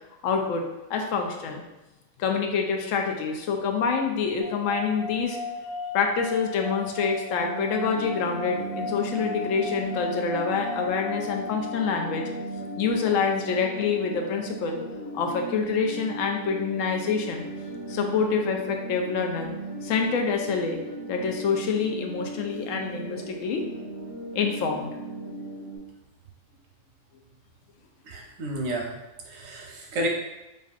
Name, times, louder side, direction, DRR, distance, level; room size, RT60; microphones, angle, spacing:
voice 1, 0.2-0.6 0.9-1.6 2.2-5.4 5.9-12.3 12.8-14.8 15.1-17.4 17.9-19.5 19.8-20.8 21.1-23.7 24.3-24.9, left 5 dB, 85° left, 2 dB, 1.0 m, -26 dB
sound 1, 4.4-15.7, left 4 dB, 30° left, 0.5 m, -37 dB
sound 2, 7.3-25.8, right 3 dB, 25° right, 1.3 m, -37 dB
voice 2, 28.0-29.0 29.2-30.1, right 1 dB, 90° right, 0 dB, 1.1 m, -31 dB
5.2 x 2.5 x 2.4 m, 1.0 s
omnidirectional pair, 1.3 m